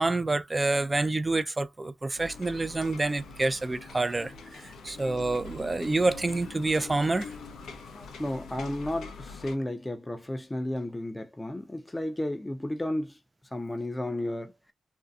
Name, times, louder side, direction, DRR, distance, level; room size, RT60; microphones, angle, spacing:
voice 1, 0.0-7.3, right 2 dB, 25° right, 0.4 m, -28 dB
sound 1, 2.1-9.5, left 4 dB, 90° left, 0.6 m, -44 dB
voice 2, 7.9-13.2 13.5-14.5, left 1 dB, 20° left, 0.6 m, -33 dB
2.7 x 2.3 x 2.3 m
cardioid pair, 55°, 0 cm